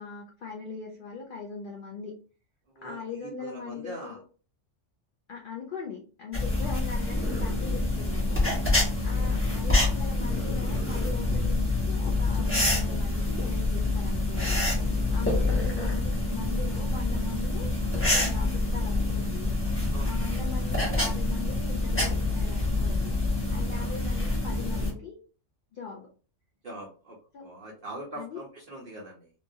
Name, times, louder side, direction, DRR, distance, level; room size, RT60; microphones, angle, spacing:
voice 1, 0.0-2.1 2.8-4.2 5.3-8.4 9.0-14.6 15.1-19.5 20.0-23.2 23.5-25.2 25.7-26.1 27.3-27.5 28.1-28.4, left 6 dB, 60° left, 0 dB, 0.6 m, -40 dB
voice 2, 2.8-4.2 6.6-6.8 9.1-9.4 15.4-15.6 19.9-20.1 23.7-23.9 26.6-27.2 27.4-29.3, right 1 dB, 55° right, -4 dB, 0.8 m, -43 dB
sound 1, 6.3-24.9, left 2 dB, 10° left, 1.0 m, -26 dB
2.9 x 2.3 x 2.6 m, 0.38 s
omnidirectional pair, 1.2 m